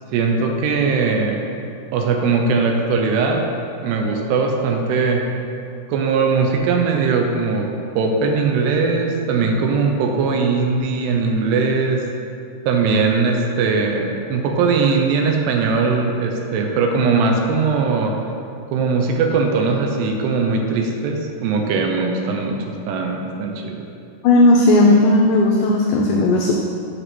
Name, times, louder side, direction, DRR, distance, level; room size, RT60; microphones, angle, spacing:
voice 1, 0.1-1.4 1.9-3.5 3.8-5.2 5.9-12.1 12.7-18.2 18.7-23.8, right 4 dB, 85° right, 2 dB, 2.9 m, -20 dB
voice 2, 24.2-26.5, left 2 dB, 90° left, 0 dB, 1.8 m, -14 dB
7.9 x 6.2 x 6.1 m, 2.5 s
omnidirectional pair, 4.7 m